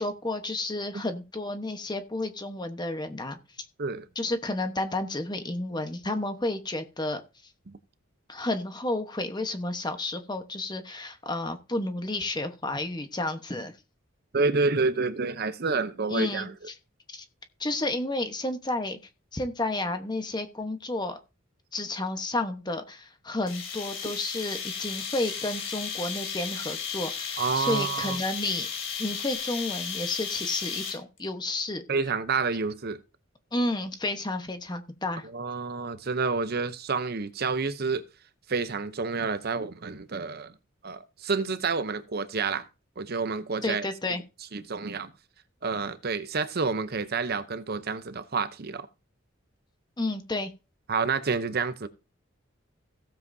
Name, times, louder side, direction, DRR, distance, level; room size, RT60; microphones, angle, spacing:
voice 1, 0.0-3.4 4.2-7.2 8.3-13.7 16.1-16.7 17.1-17.2 17.6-19.0 19.3-21.2 21.7-28.7 29.0-31.8 33.5-35.3 43.6-44.2 50.0-50.5, left 2 dB, 20° left, 1.1 m, -31 dB
voice 2, 14.3-16.5 27.4-28.2 31.9-33.0 35.2-38.0 38.5-40.5 40.8-42.7 43.0-43.9 44.5-45.1 45.6-48.9 50.9-51.9, right 4 dB, 50° right, 0.7 m, -29 dB
sound 1, 23.5-31.2, left 6 dB, 70° left, 3.2 m, -34 dB
16.5 x 7.5 x 2.7 m
head